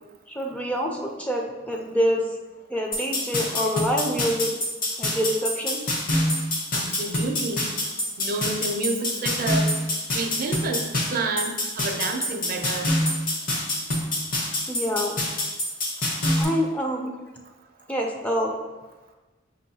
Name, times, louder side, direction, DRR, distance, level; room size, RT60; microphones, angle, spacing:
voice 1, 0.3-2.3 2.7-4.5 5.0-5.8 14.7-15.2 16.4-17.1 17.9-18.5, equal, 5° left, 1 dB, 0.4 m, -26 dB
sound 1, 2.9-16.4, left 1 dB, 50° left, 0.8 m, -26 dB
voice 2, 6.7-7.7 8.2-9.7 10.1-10.8 11.1-12.9, right 3 dB, 50° right, 4 dB, 0.4 m, -29 dB
5.8 x 2.7 x 2.7 m, 1.2 s
head